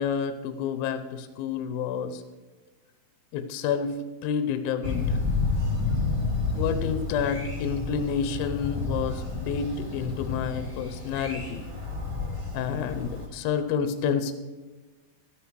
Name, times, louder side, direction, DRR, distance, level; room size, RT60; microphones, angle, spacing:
voice 1, 0.0-2.2 3.3-3.9 4.2-5.2 6.6-11.6 12.5-14.3, left 7 dB, 80° left, 9 dB, 2.5 m, -29 dB
Thunder, 4.8-13.3, left 3 dB, 10° right, 1.6 m, -30 dB
13.5 x 10.0 x 4.7 m, 1.3 s
omnidirectional pair, 4.4 m